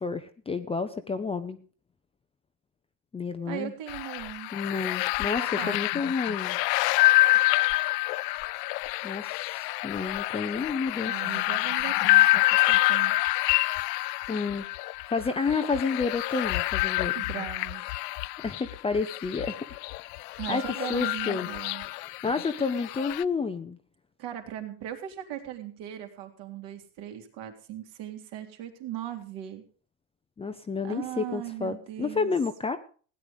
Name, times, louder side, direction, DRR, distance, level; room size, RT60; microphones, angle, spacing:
voice 1, 0.0-1.6 3.1-3.7 4.5-6.6 9.0-9.4 9.8-11.1 14.3-14.6 15.1-17.1 18.4-19.7 20.5-20.6 20.9-21.5 22.0-23.8 30.4-32.8, left 4 dB, 10° left, 8 dB, 0.7 m, -30 dB
voice 2, 3.5-4.5 5.2-5.8 11.0-13.1 17.0-17.8 20.4-21.8 24.2-29.6 30.8-32.3, right 12 dB, 55° right, 5 dB, 3.2 m, -38 dB
sound 1, 3.9-23.2, left 19 dB, 75° left, 0.6 m, -27 dB
16.5 x 9.9 x 5.1 m, 0.41 s
supercardioid pair, 140°, 49 cm